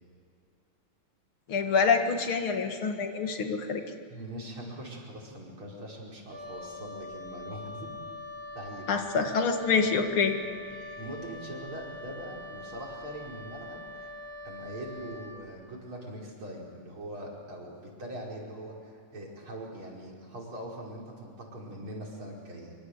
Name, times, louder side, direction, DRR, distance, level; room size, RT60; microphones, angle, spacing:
voice 1, 1.5-3.8 8.9-10.4, left 5 dB, 85° left, 5 dB, 2.8 m, -26 dB
voice 2, 4.1-7.9 8.5-8.9 10.7-14.1 14.4-22.7, right 1 dB, 85° right, -2 dB, 5.9 m, -42 dB
Wind instrument woodwind instrument, 6.3-15.4, left 2 dB, 10° right, 5.2 m, -43 dB
25.5 x 24.5 x 8.1 m, 2.4 s
omnidirectional pair, 2.2 m